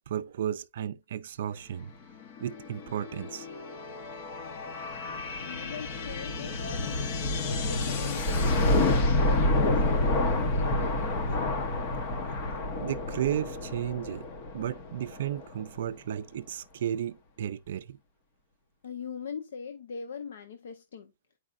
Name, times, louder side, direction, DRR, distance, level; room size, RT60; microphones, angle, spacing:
voice 1, 0.1-1.9 2.4-3.7 12.8-14.3 14.5-18.0, right 10 dB, 55° right, 0.4 m, -34 dB
sound 1, 2.2-15.7, left 2 dB, 30° left, 0.8 m, -29 dB
voice 2, 5.4-11.6 18.8-21.1, left 6 dB, 75° left, 0.8 m, -41 dB
9.8 x 4.7 x 2.5 m
hypercardioid pair, 175°, 0 cm